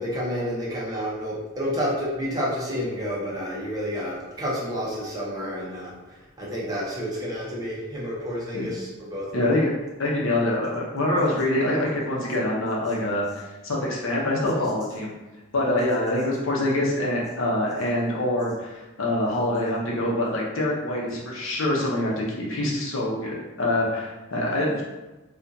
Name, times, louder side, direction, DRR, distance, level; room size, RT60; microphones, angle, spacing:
voice 1, 0.0-9.5 14.6-14.7, equal, 20° right, -6 dB, 0.8 m, -30 dB
voice 2, 9.3-9.7 10.0-15.1 15.5-24.8, left 1 dB, 80° left, -3 dB, 0.8 m, -25 dB
4.4 x 2.4 x 2.7 m, 1.1 s
head